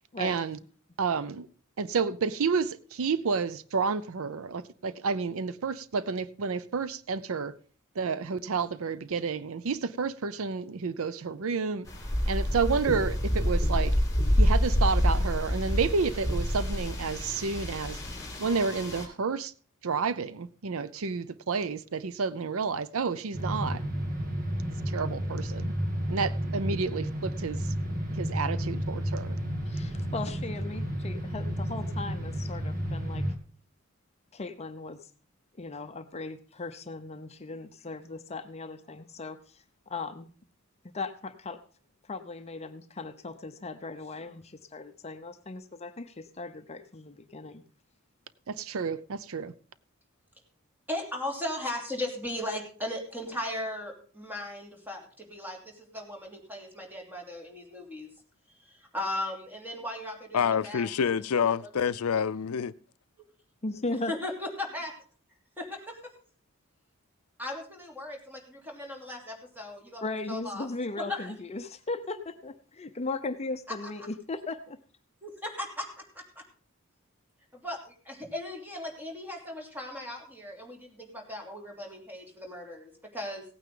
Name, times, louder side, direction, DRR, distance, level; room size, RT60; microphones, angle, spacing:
voice 1, 0.2-0.6 1.0-1.5 1.8-7.5 8.0-11.9 12.3-13.9 14.4-18.0 18.4-19.5 19.8-23.8 24.9-25.6 26.1-27.6 28.2-29.4 48.5-49.5, right 5 dB, 70° right, 0.6 m, -30 dB
sound 1, 11.9-19.1, equal, 15° left, 3.2 m, -27 dB
sound 2, 23.3-33.3, equal, 40° right, 2.0 m, -32 dB
voice 2, 29.7-33.2 34.3-35.0 35.6-39.4 39.9-40.3 40.9-41.6 42.1-47.6 63.6-64.1 70.0-74.8, left 3 dB, 30° left, 0.7 m, -37 dB
voice 3, 50.9-58.1 58.9-60.9 61.4-61.7 63.9-64.9 65.6-66.1 67.4-70.7 71.0-71.3 75.2-76.4 77.5-83.4, left 1 dB, 10° right, 2.9 m, -37 dB
voice 4, 60.3-62.7, left 7 dB, 90° left, 0.5 m, -27 dB
17.0 x 9.2 x 3.8 m
head